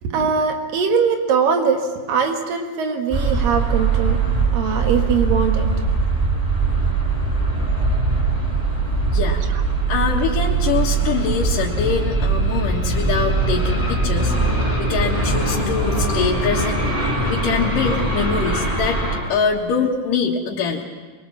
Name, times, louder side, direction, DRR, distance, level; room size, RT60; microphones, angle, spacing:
voice 1, 0.0-4.2 4.5-5.7 9.5-9.6, right 6 dB, 85° right, 4 dB, 3.5 m, -21 dB
sound 1, 3.1-19.2, right 3 dB, 5° right, 5.2 m, -21 dB
voice 2, 9.1-9.4 9.9-19.0 19.3-20.8, left 6 dB, 75° left, -5 dB, 3.2 m, -24 dB
23.0 x 22.5 x 7.2 m, 1.5 s
omnidirectional pair, 3.8 m